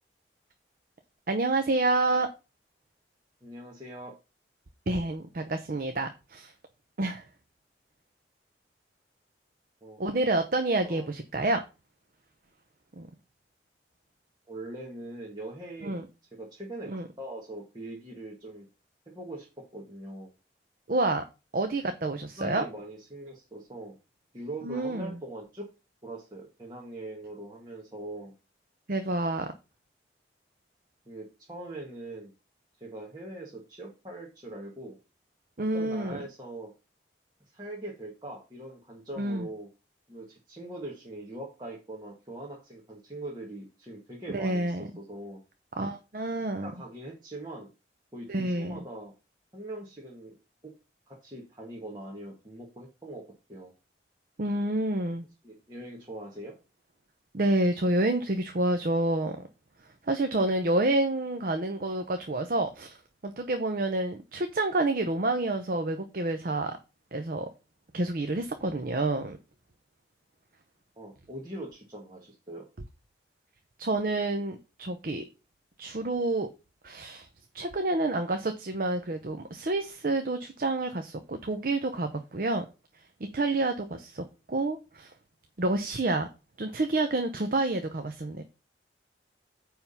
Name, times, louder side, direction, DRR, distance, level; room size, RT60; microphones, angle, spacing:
voice 1, 1.3-2.3 4.9-6.5 7.0-7.2 10.0-11.6 13.0-13.1 15.8-16.0 16.9-17.0 20.9-21.2 21.5-22.7 24.6-25.2 28.9-29.5 35.6-36.2 39.2-39.5 44.3-44.9 45.8-46.7 48.3-48.8 54.4-55.3 57.3-59.5 60.0-63.0 63.2-66.8 67.1-67.5 67.9-69.4 73.8-75.3 75.8-76.5 76.8-77.3 77.5-82.6 83.3-85.1 85.6-86.3 86.6-88.4, right 2 dB, 50° right, 0.7 m, -28 dB
voice 2, 3.4-4.1 9.8-10.0 10.8-11.1 14.5-16.0 16.3-18.7 19.1-20.3 22.4-24.0 24.3-25.7 26.0-28.3 31.0-32.3 32.8-35.0 35.6-36.7 37.5-39.7 40.1-45.4 46.6-47.7 48.1-49.1 49.5-50.4 51.1-53.2 53.5-53.7 55.4-56.5 70.9-72.6, right 1 dB, 25° right, 1.7 m, -42 dB
9.1 x 3.7 x 5.5 m
head